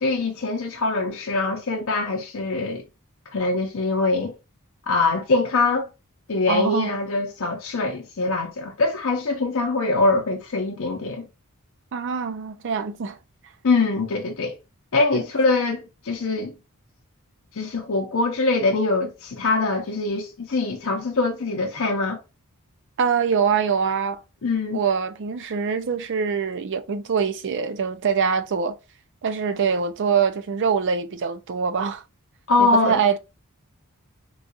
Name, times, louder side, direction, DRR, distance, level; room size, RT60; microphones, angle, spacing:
voice 1, 0.0-2.9 3.3-4.4 4.9-5.9 6.3-11.2 13.6-14.6 14.9-16.5 17.5-22.2 24.4-24.8 32.5-33.0, left 3 dB, 60° left, 0.6 m, -23 dB
voice 2, 6.5-6.9 11.9-13.2 15.1-15.2 23.0-24.2 24.7-28.8 29.2-32.0 32.6-33.2, right 6 dB, 55° right, 0.5 m, -24 dB
3.9 x 2.4 x 2.6 m
head